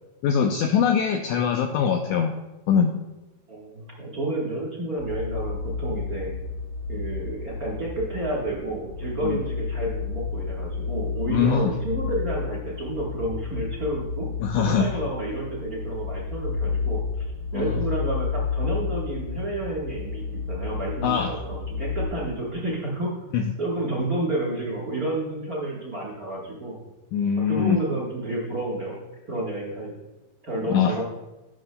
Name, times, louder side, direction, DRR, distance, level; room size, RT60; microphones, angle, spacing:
voice 1, 0.2-2.3 2.7-2.9 9.2-9.4 11.3-11.7 14.4-15.0 17.5-17.7 21.0-21.3 23.3-23.4 27.1-27.8 30.7-31.0, left 7 dB, 80° left, 4 dB, 1.7 m, -22 dB
voice 2, 3.5-6.3 6.9-14.3 14.6-23.1 23.6-26.8 27.5-29.9 30.4-31.0, right 1 dB, 60° right, -4 dB, 0.9 m, -30 dB
sound 1, 5.0-22.1, left 5 dB, 85° right, 3.6 m, -31 dB
11.5 x 11.0 x 2.2 m, 1.0 s
omnidirectional pair, 4.0 m